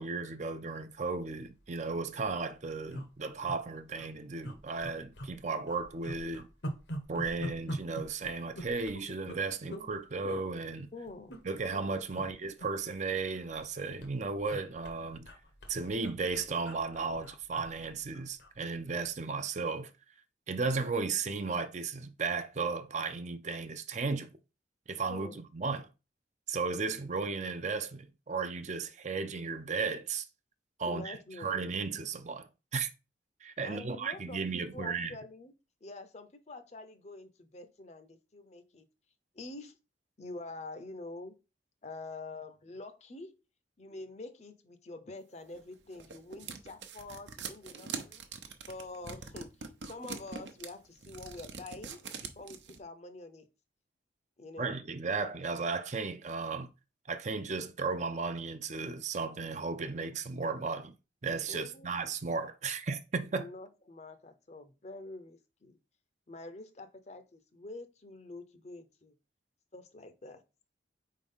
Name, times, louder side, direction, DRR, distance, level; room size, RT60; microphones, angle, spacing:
voice 1, 0.0-6.5 7.1-10.9 11.4-15.3 15.7-19.9 20.5-24.3 24.9-25.9 26.5-30.3 30.8-32.9 33.4-35.2 54.6-56.7 57.1-60.9 61.2-63.5, right 4 dB, 40° right, 0.6 m, -35 dB
sound 1, 1.4-1.6 1.9-2.0 2.2-2.4 2.9-3.6 3.9-4.1 4.4-5.4 5.7-9.9 10.2-10.5 11.1-11.8 12.1-12.3 12.6-13.7 14.0-18.6 18.9-19.1, right 1 dB, 75° left, 1.2 m, -43 dB
voice 2, 10.9-11.4 12.2-12.3 25.1-25.4 30.8-31.7 33.6-35.5 35.8-38.9 39.3-39.8 40.2-41.3 41.8-43.4 43.8-48.3 48.6-49.6 49.8-53.5 54.4-54.7 61.5-62.0 63.4-65.8 66.3-69.1 69.7-70.4, left 2 dB, 40° left, 0.7 m, -46 dB
sound 2, 45.5-52.8, right 5 dB, 80° right, 0.9 m, -43 dB
4.7 x 3.7 x 5.5 m
head